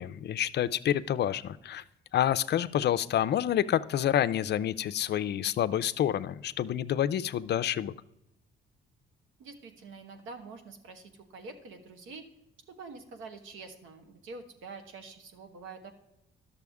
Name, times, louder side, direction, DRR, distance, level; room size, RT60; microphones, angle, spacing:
voice 1, 0.0-1.8 2.1-7.9, left 11 dB, 60° left, 15 dB, 0.5 m, -28 dB
voice 2, 9.4-12.2 12.7-15.9, right 4 dB, 90° right, 6 dB, 1.3 m, -46 dB
11.5 x 6.8 x 3.5 m, 0.87 s
cardioid pair, 90°, 20 cm